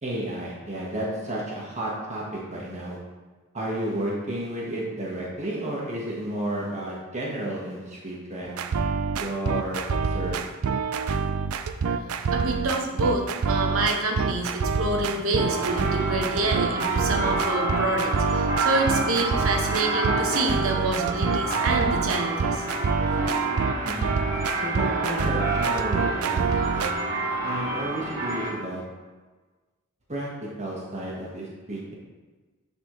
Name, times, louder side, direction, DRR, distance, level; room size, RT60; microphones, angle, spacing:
voice 1, 0.0-3.0 3.5-8.6 9.2-10.5 23.9-24.1 24.6-26.9 27.4-28.8 30.1-31.9, right 1 dB, 35° right, -5 dB, 1.4 m, -32 dB
sound 1, 8.5-26.9, right 5 dB, 90° right, 0.4 m, -26 dB
voice 2, 12.3-22.7, right 2 dB, 70° right, 2 dB, 1.1 m, -27 dB
sound 2, 15.4-28.5, right 1 dB, 15° right, 2.0 m, -29 dB
10.5 x 4.1 x 3.1 m, 1.3 s
head